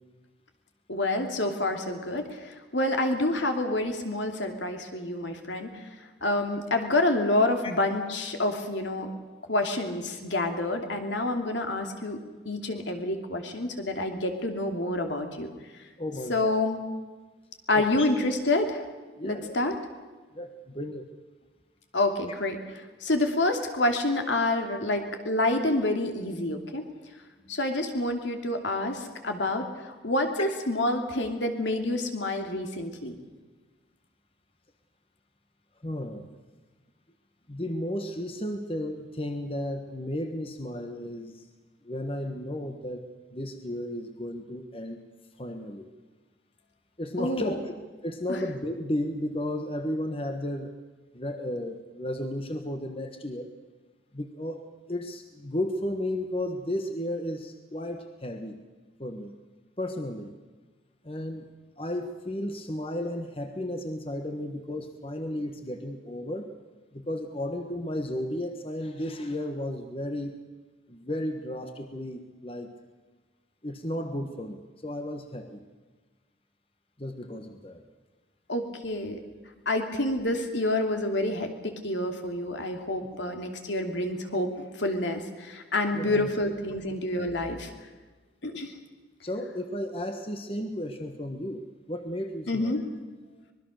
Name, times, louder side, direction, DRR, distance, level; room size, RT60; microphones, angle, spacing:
voice 1, 0.9-2.4 2.7-5.7 6.2-9.1 9.5-12.2 12.4-15.5 16.3-16.8 17.7-18.8 19.2-19.8 21.9-22.6 23.0-26.9 27.5-33.1 47.2-47.6 48.3-48.4 78.5-79.2 79.7-87.7 88.4-88.7 92.5-92.8, left 2 dB, 70° left, 4 dB, 2.8 m, -28 dB
voice 2, 16.0-16.6 17.7-18.1 19.2-19.5 20.3-21.0 35.8-36.2 37.5-41.4 41.8-45.0 45.4-45.9 47.0-47.6 48.0-50.7 51.1-53.5 54.1-58.5 59.0-59.3 59.8-60.3 61.0-61.4 61.8-66.5 66.9-70.3 70.9-72.7 73.6-75.6 77.0-77.8 85.9-86.3 89.2-92.8, left 1 dB, 30° left, 6 dB, 1.4 m, -34 dB
25.0 x 21.0 x 6.6 m, 1.3 s
head